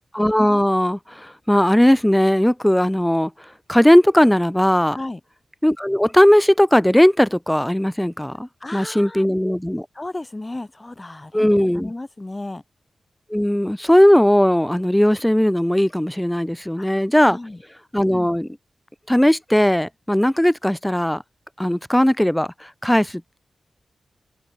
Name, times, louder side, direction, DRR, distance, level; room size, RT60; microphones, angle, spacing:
voice 1, 0.1-3.3 3.7-5.0 5.6-9.9 11.3-11.9 13.3-17.4 17.9-18.5 19.1-21.2 21.6-23.4, equal, 5° left, 0.4 m, -18 dB
voice 2, 8.6-9.2 9.9-11.5 11.7-12.6 16.8-16.9 17.2-17.6, left 2 dB, 25° left, 1.4 m, -33 dB
cardioid pair, 60°, 0 cm